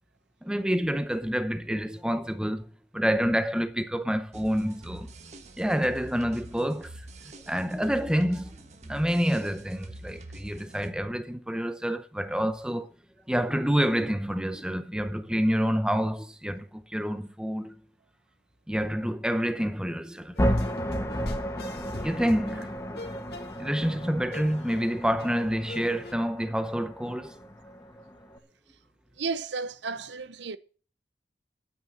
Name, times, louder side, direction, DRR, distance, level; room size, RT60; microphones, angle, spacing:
voice 1, 0.4-5.1 5.6-7.1 7.4-8.5 8.9-12.9 13.3-17.8 18.7-20.5 22.0-22.8 23.6-27.4, equal, 5° right, 0.8 m, -28 dB
sound 1, 4.3-10.9, right 1 dB, 40° right, 1.4 m, -46 dB
sound 2, 20.3-26.1, left 2 dB, 60° left, 1.8 m, -43 dB
sound 3, 20.4-28.4, equal, 15° left, 1.3 m, -33 dB
voice 2, 29.2-30.6, right 4 dB, 80° right, 0.8 m, -33 dB
10.5 x 9.4 x 7.0 m
head